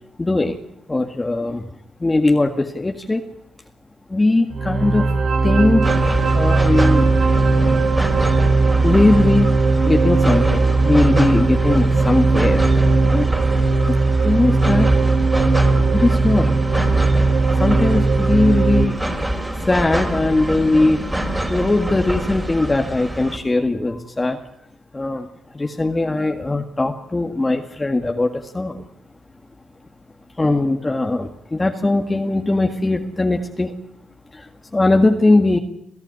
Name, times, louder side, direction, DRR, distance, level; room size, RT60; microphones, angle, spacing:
voice 1, 0.2-0.6 0.9-1.7 2.0-3.2 4.1-5.1 5.4-6.0 6.3-7.1 8.8-12.7 13.0-13.3 13.9-14.0 14.2-15.0 15.9-16.6 17.5-19.0 19.7-24.4 24.9-25.3 25.5-28.8 30.3-33.8 34.3-35.6, left 2 dB, 20° left, 3 dB, 1.8 m, -20 dB
sound 1, 4.5-18.9, right 3 dB, 55° right, 3.7 m, -17 dB
sound 2, 5.8-23.4, right 1 dB, 10° right, 4.0 m, -26 dB
27.0 x 15.0 x 9.7 m, 0.79 s
cardioid pair, 70°, 0 cm